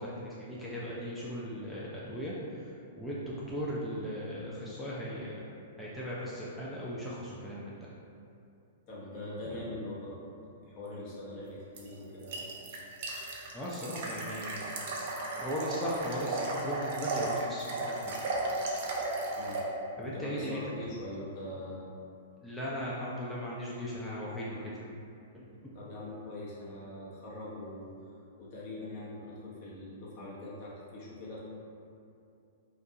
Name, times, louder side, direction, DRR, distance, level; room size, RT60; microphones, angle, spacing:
voice 1, 0.0-5.5 5.8-7.8 9.5-9.6 13.5-14.7 15.1-18.5 20.0-20.6 22.4-24.9 25.3-25.7, equal, 5° left, -8 dB, 0.4 m, -38 dB
voice 2, 8.9-10.2 10.7-12.4 19.4-19.6 20.0-21.8 22.3-22.4 25.7-27.9 28.4-31.4, left 1 dB, 45° left, -6 dB, 0.7 m, -42 dB
sound 1, 11.8-19.6, right 2 dB, 55° right, 0.4 m, -35 dB
2.4 x 2.2 x 2.7 m, 2.6 s
hypercardioid pair, 110°, 0 cm